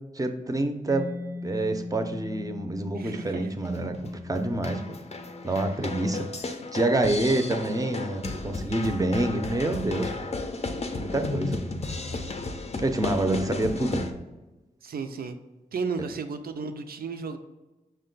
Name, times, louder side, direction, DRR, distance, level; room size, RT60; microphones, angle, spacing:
voice 1, 0.1-1.1 1.4-5.0 5.4-10.1 11.0-11.6 12.8-14.1, right 2 dB, 25° right, 6 dB, 0.5 m, -27 dB
Mallet percussion, 0.9-8.4, left 3 dB, 90° left, 0.6 m, -41 dB
voice 2, 2.9-3.5 5.5-5.6 14.8-15.4 15.7-17.4, right 5 dB, 80° right, 8 dB, 0.4 m, -33 dB
sound 1, 3.6-14.1, left 3 dB, 45° left, 0.5 m, -34 dB
5.8 x 2.2 x 3.8 m, 1.1 s
wide cardioid pair, 70°, 15 cm